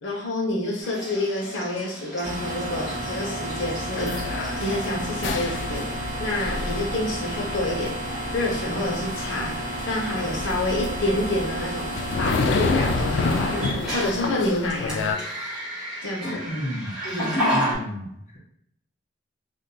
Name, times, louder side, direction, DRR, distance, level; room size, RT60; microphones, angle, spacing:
voice 1, 0.0-4.2 4.6-7.9 8.3-13.6 13.9-15.1 16.0-16.5 17.0-17.4, left 1 dB, 85° left, -2 dB, 0.8 m, -28 dB
sound 1, 0.8-4.9 5.3-5.7 6.7-6.8 7.3-7.7 8.0-8.3 10.3-10.4 13.4-17.7, equal, 5° right, 1.1 m, -32 dB
sound 2, 2.2-13.7, right 1 dB, 45° right, 0.8 m, -32 dB
sound 3, 4.0-15.2, left 4 dB, 70° left, 0.3 m, -29 dB
voice 2, 16.5-16.9 17.5-18.4, equal, 40° left, -5 dB, 0.8 m, -32 dB
2.6 x 2.3 x 3.9 m, 0.80 s
head